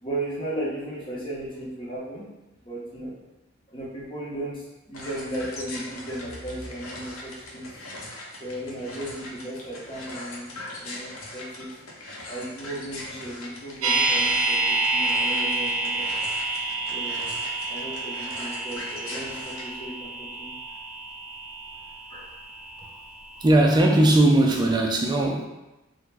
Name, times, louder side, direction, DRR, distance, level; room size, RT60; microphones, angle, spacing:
voice 1, 0.0-2.3 2.6-3.1 3.7-7.7 8.4-11.7 12.3-16.1 16.9-17.2 17.7-20.5 22.1-22.3, right 1 dB, 25° left, -6 dB, 0.8 m, -35 dB
sound 1, 4.9-19.6, left 1 dB, 85° left, 0.7 m, -41 dB
sound 2, 13.8-23.9 24.1-24.2, right 2 dB, 90° right, 0.5 m, -28 dB
voice 2, 23.4-25.4, right 1 dB, 20° right, 1 dB, 0.3 m, -19 dB
3.3 x 2.1 x 3.3 m, 1.0 s
head